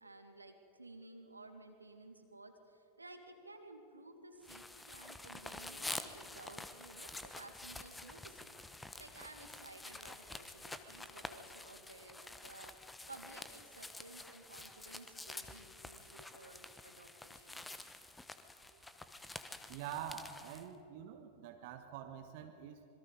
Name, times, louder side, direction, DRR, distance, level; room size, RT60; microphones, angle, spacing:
voice 1, 0.0-17.7, right 2 dB, 80° right, 5 dB, 2.2 m, -55 dB
sound 1, 4.4-20.7, left 2 dB, 10° left, 1.1 m, -49 dB
voice 2, 18.5-19.2 19.7-22.9, right 9 dB, 50° right, 5 dB, 1.4 m, -47 dB
26.5 x 22.0 x 5.3 m, 3.0 s
figure-of-eight pair, 90°, 0 cm